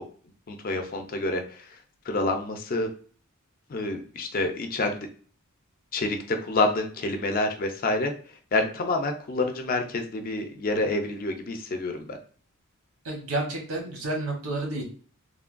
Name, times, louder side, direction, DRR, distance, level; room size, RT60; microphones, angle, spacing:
voice 1, 0.5-1.7 2.1-2.9 3.7-5.1 5.9-8.1 8.5-12.2, left 2 dB, 40° left, 5 dB, 0.4 m, -28 dB
voice 2, 13.0-14.8, right 2 dB, 80° right, 0 dB, 1.0 m, -30 dB
3.2 x 2.2 x 2.4 m, 0.43 s
head